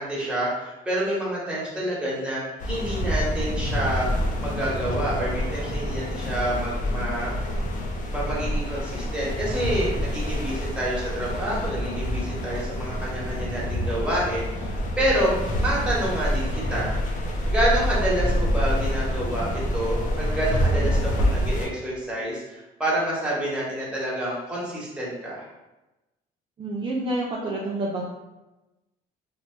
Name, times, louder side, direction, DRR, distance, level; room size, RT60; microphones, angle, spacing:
voice 1, 0.0-4.1 4.4-7.3 8.1-16.9 17.5-25.5, right 1 dB, 5° right, -7 dB, 1.1 m, -28 dB
sound 1, 2.6-21.7, equal, 50° left, 0.5 m, -27 dB
voice 2, 26.6-28.0, right 2 dB, 30° right, -4 dB, 0.4 m, -28 dB
2.9 x 2.1 x 3.0 m, 1.0 s
cardioid pair, 110°, 17 cm